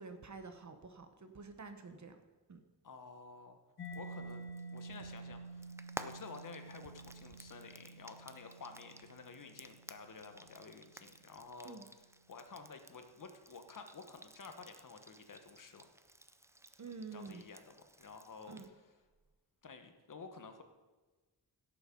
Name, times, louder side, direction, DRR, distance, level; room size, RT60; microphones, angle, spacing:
voice 1, 0.0-2.2 2.5-2.6 11.6-11.8 16.8-17.4 18.5-18.7, right 4 dB, 45° right, 8 dB, 1.1 m, -48 dB
voice 2, 2.8-3.6 3.9-4.4 4.7-5.7 6.0-11.8 12.3-15.9 16.8-18.8 19.6-20.6, left 4 dB, 50° left, 7 dB, 1.1 m, -52 dB
Mallet percussion, 3.8-11.3, right 2 dB, 70° left, 1.8 m, -50 dB
Frying (food), 3.8-18.7, right 1 dB, 5° right, 0.4 m, -55 dB
16.5 x 7.1 x 5.2 m, 1.3 s
wide cardioid pair, 165°, 40 cm